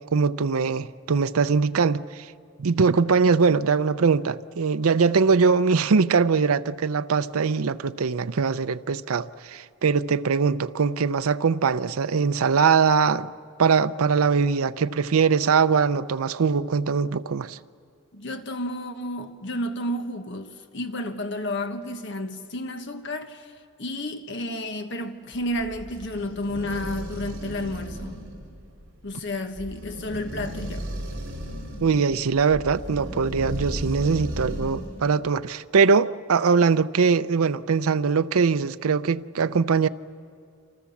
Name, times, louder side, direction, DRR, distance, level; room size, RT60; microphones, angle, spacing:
voice 1, 0.0-2.3 2.6-13.3 13.6-17.6 31.8-39.9, right 5 dB, 85° right, 0.6 m, -22 dB
voice 2, 18.1-23.5 23.8-28.2 29.0-30.9, left 1 dB, 55° left, 1.4 m, -31 dB
sound 1, 25.3-35.0, equal, 55° right, 5.0 m, -35 dB
28.5 x 26.5 x 7.2 m
head